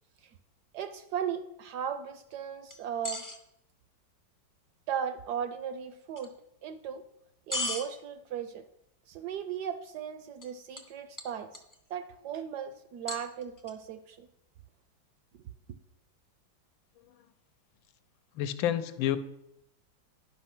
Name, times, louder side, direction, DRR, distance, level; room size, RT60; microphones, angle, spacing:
voice 1, 0.7-3.2 4.9-6.3 6.6-7.0 7.5-8.6 9.1-11.6 11.9-14.3 15.4-15.5, right 8 dB, 70° right, 10 dB, 1.0 m, -37 dB
sound 1, 2.7-3.4 6.2-6.3 7.5-7.9 10.4-10.5 10.8-10.9 11.2-11.8 13.1-13.7, left 2 dB, 30° left, 0.3 m, -35 dB
voice 2, 18.3-19.2, left 11 dB, 85° left, 11 dB, 1.4 m, -29 dB
10.5 x 5.5 x 5.9 m, 0.79 s
omnidirectional pair, 2.1 m